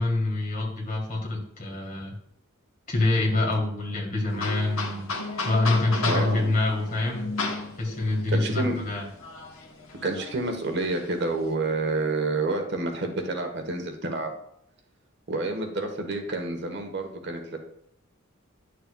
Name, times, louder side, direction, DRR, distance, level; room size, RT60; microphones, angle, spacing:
voice 1, 0.0-2.1 2.9-5.1 5.4-7.3 7.8-9.0, left 2 dB, 35° left, -1 dB, 1.7 m, -26 dB
sound 1, 4.3-11.5, left 3 dB, 75° left, 1.0 m, -34 dB
voice 2, 6.0-6.5 8.3-8.8 10.0-14.4 15.3-17.6, right 2 dB, 50° right, 4 dB, 1.2 m, -29 dB
10.5 x 6.6 x 2.3 m, 0.74 s
head